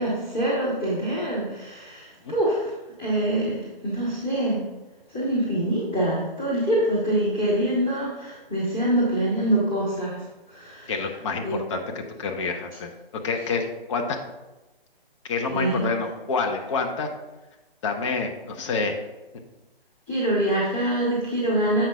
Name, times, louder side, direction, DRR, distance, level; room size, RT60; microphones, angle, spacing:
voice 1, 0.0-2.7 3.0-4.6 5.1-10.2 10.5-10.9 11.4-11.5 15.5-15.8 20.1-21.8, right 1 dB, 5° left, -16 dB, 0.3 m, -25 dB
voice 2, 10.9-12.9 13.2-14.2 15.3-17.1 17.8-19.0, left 4 dB, 30° left, 3 dB, 0.8 m, -28 dB
7.3 x 5.6 x 3.5 m, 1.1 s
figure-of-eight pair, 135°, 29 cm